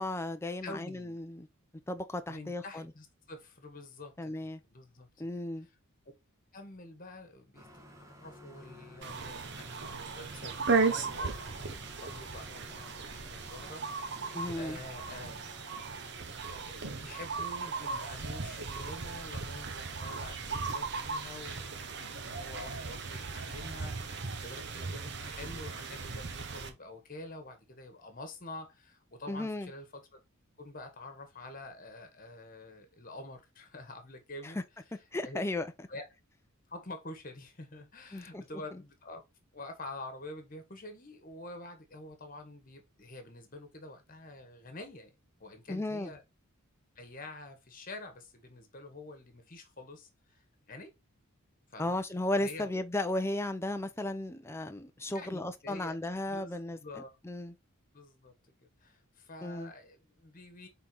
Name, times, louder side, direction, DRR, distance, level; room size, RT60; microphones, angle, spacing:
voice 1, 0.0-1.5 1.9-2.9 4.2-4.6 5.2-5.7 14.3-14.8 29.3-29.7 35.1-35.7 38.1-38.4 45.7-46.1 51.8-56.8 57.2-57.5 59.4-59.7, left 1 dB, 10° left, 0.5 m, -35 dB
voice 2, 0.6-1.2 2.3-5.3 5.6-5.8 6.5-13.8 14.5-15.4 16.3-30.2 30.6-34.6 34.9-35.4 35.9-36.1 36.7-39.2 39.5-45.1 45.4-46.2 46.9-50.9 51.7-52.0 52.4-52.8 55.1-56.0 56.3-57.1 57.9-58.3 58.6-60.7, left 2 dB, 40° left, 1.5 m, -47 dB
sound 1, 7.5-16.2, equal, 15° right, 1.2 m, -54 dB
sound 2, 9.0-26.7, right 4 dB, 50° right, 1.0 m, -36 dB
5.7 x 3.9 x 4.5 m
head